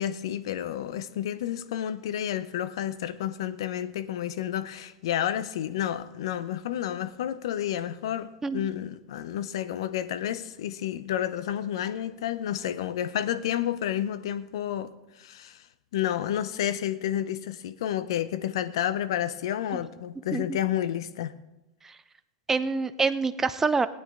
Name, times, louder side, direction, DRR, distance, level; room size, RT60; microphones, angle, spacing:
voice 1, 0.0-15.7 15.9-21.3, left 11 dB, 70° left, 0.7 m, -30 dB
voice 2, 22.5-23.9, right 4 dB, 15° right, 0.6 m, -26 dB
18.0 x 9.2 x 3.7 m
hypercardioid pair, 100°, 3 cm